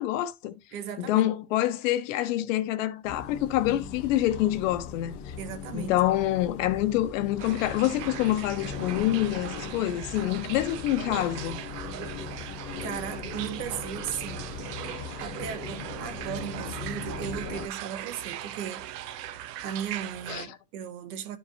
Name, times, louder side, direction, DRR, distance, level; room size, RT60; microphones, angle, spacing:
voice 1, 0.0-0.6 1.0-5.3 5.7-11.6 20.3-20.5, left 14 dB, 55° left, 1.0 m, -26 dB
voice 2, 0.7-1.3 5.4-6.0 12.8-14.5 15.2-19.3 19.6-21.4, right 9 dB, 65° right, 1.6 m, -36 dB
sound 1, 3.0-17.7, left 6 dB, 20° left, 0.3 m, -39 dB
sound 2, 7.4-20.5, right 12 dB, 85° right, 1.0 m, -39 dB
12.0 x 4.8 x 2.8 m
supercardioid pair, 165°, 47 cm